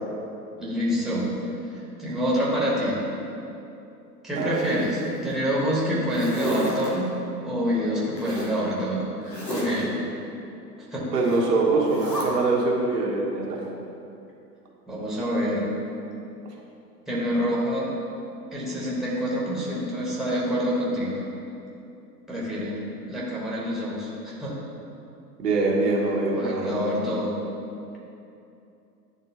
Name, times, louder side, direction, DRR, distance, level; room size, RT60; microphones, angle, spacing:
voice 1, 0.6-1.3 2.0-3.0 4.2-7.1 7.4-9.0 9.5-9.9 10.9-11.0 14.9-15.7 17.1-17.9 18.5-21.2 22.3-24.5 26.3-27.3, equal, ahead, -6 dB, 1.2 m, -26 dB
Zipper (clothing), 4.3-5.3 5.8-6.9 8.1-8.6 9.2-9.8 11.1-11.4 11.8-12.2, equal, 90° left, 1.3 m, -34 dB
voice 2, 11.1-13.6 25.4-26.8, right 3 dB, 75° right, -3 dB, 1.3 m, -23 dB
10.5 x 3.5 x 2.9 m, 2.7 s
figure-of-eight pair, 95°, 48 cm